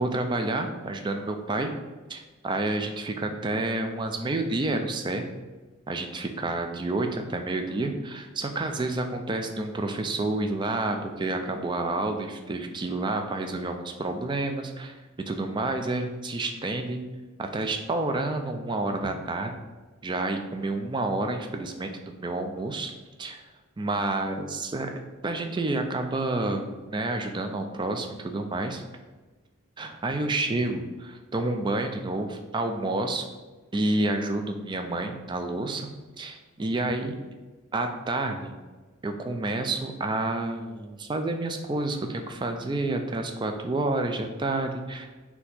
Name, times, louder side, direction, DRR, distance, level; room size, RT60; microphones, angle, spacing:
voice 1, 0.0-1.7 2.1-5.3 5.9-15.0 15.3-17.0 17.4-19.5 20.0-22.9 23.2-23.4 23.8-24.9 25.2-28.8 29.8-33.3 33.7-35.9 36.2-37.1 37.7-38.5 39.0-45.2, right 2 dB, 20° right, 5 dB, 0.3 m, -29 dB
4.2 x 2.8 x 4.1 m, 1.3 s
head